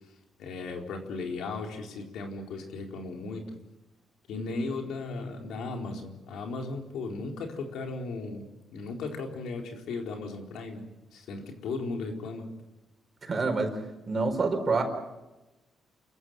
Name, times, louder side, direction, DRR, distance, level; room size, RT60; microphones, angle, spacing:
voice 1, 0.4-3.6 4.3-8.4 8.7-10.8 11.1-12.5, left 3 dB, 85° left, 2 dB, 4.3 m, -36 dB
voice 2, 13.2-13.8 14.1-14.8, right 3 dB, 35° right, 5 dB, 4.7 m, -27 dB
29.0 x 15.0 x 9.0 m, 1.0 s
cardioid pair, 125°, 0 cm